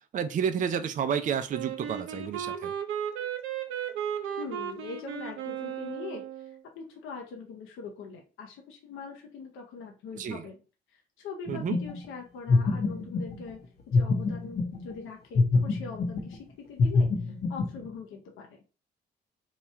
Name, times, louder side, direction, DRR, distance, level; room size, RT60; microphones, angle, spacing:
voice 1, 0.1-2.7 10.2-10.4 11.5-11.8, right 7 dB, 40° right, 9 dB, 0.4 m, -30 dB
Wind instrument woodwind instrument, 1.5-6.6, right 9 dB, 85° right, 0.7 m, -35 dB
voice 2, 4.4-10.6 10.9-13.6 13.9-18.6, left 5 dB, 85° left, 1 dB, 0.7 m, -42 dB
sound 1, 11.5-12.1 12.5-13.5 13.9-14.9 15.4-16.4 16.8-17.9, left 3 dB, 55° left, 0.8 m, -26 dB
2.9 x 2.3 x 4.2 m, 0.35 s
cardioid pair, 90°, 20 cm